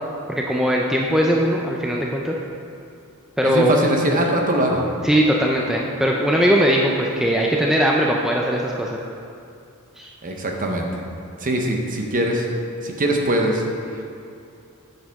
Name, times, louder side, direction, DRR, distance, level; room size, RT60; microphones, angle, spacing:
voice 1, 0.3-2.4 3.4-3.7 5.0-9.0 10.0-10.1, equal, ahead, -2 dB, 0.4 m, -20 dB
voice 2, 3.4-4.9 10.2-10.9 11.4-12.5 12.8-13.6, right 1 dB, 40° right, 1 dB, 0.8 m, -21 dB
7.7 x 7.3 x 3.5 m, 2.5 s
head